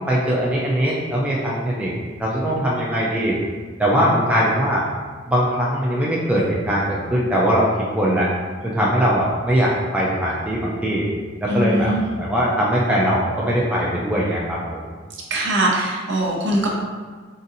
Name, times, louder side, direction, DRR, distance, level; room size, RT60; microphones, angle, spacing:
voice 1, 0.1-1.9 2.2-3.4 3.8-4.8 5.3-8.3 8.6-11.1 11.4-14.8, equal, 5° right, -6 dB, 0.3 m, -21 dB
voice 2, 11.5-12.0 15.3-16.7, right 1 dB, 55° right, -2 dB, 0.6 m, -21 dB
4.0 x 2.5 x 2.6 m, 1.5 s
head